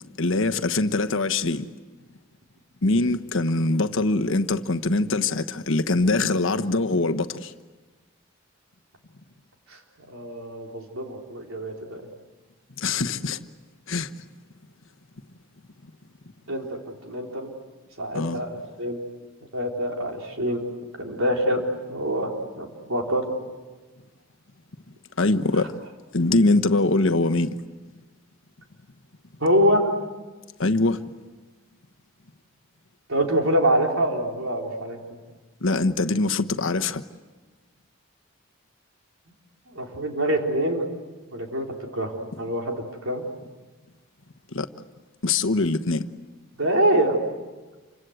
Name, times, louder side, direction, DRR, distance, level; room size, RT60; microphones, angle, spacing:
voice 1, 0.2-1.7 2.8-7.5 12.8-13.4 13.9-14.2 18.1-18.4 25.2-25.7 26.1-27.6 30.6-31.0 35.6-37.0 44.5-44.7 45.2-46.1, left 2 dB, 65° left, 1.1 m, -23 dB
voice 2, 10.1-12.0 16.5-17.5 18.0-19.0 19.5-20.6 21.0-21.6 21.9-23.3 29.4-29.9 33.1-35.2 39.7-40.9 41.3-43.2 46.6-47.3, right 1 dB, 80° right, 4.0 m, -25 dB
28.5 x 25.5 x 8.0 m
head